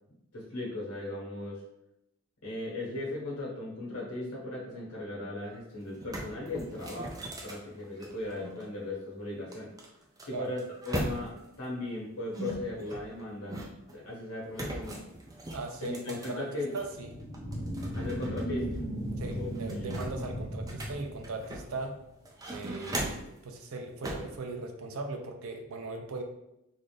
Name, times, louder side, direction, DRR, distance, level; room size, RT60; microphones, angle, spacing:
voice 1, 0.3-1.6 2.4-9.7 10.2-13.6 13.9-15.0 15.8-16.7 17.9-18.7 19.3-19.9, left 2 dB, 85° left, -4 dB, 1.4 m, -37 dB
sound 1, 5.5-5.6 5.9-8.6 9.5-11.5 12.3-13.9 14.5-16.9 17.3-18.4 18.7-18.8 19.2-21.8 22.2-23.4 24.0-24.4, right 1 dB, 15° right, 0.3 m, -39 dB
voice 2, 15.5-17.1 19.2-21.9 22.5-26.2, right 3 dB, 70° right, 4 dB, 0.5 m, -39 dB
sound 2, 16.9-21.9, equal, 25° left, 1.5 m, -36 dB
4.0 x 2.5 x 3.3 m, 0.85 s
head